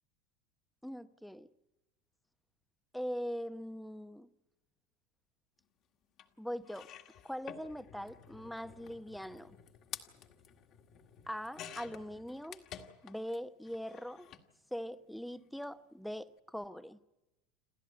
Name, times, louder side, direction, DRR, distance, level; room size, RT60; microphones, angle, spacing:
voice 1, 0.8-1.5 2.9-4.3 6.4-6.9 7.2-9.6 11.3-12.6 13.0-14.3 14.7-17.0, equal, ahead, 0.8 m, -41 dB
sound 1, 6.2-6.3 6.6-13.4 13.6-14.5 15.5-15.6 15.9-16.0, left 9 dB, 50° left, 1.9 m, -51 dB
28.5 x 13.5 x 9.5 m
supercardioid pair, 120°, 0 cm